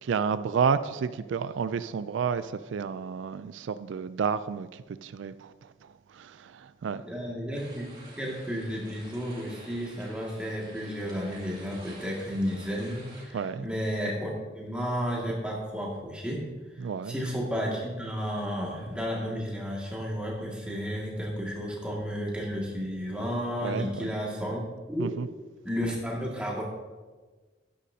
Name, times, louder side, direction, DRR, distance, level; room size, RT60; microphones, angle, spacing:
voice 1, 0.0-5.5 6.1-7.0 13.3-13.6 16.8-17.1 23.6-24.1 25.0-25.3, right 6 dB, 80° right, 13 dB, 0.4 m, -30 dB
voice 2, 7.1-16.5 17.0-24.6 24.9-25.2 25.6-26.6, equal, 5° right, -3 dB, 2.0 m, -32 dB
sound 1, 7.5-13.3, right 2 dB, 25° right, 2.6 m, -50 dB
12.5 x 10.5 x 2.8 m, 1.3 s
head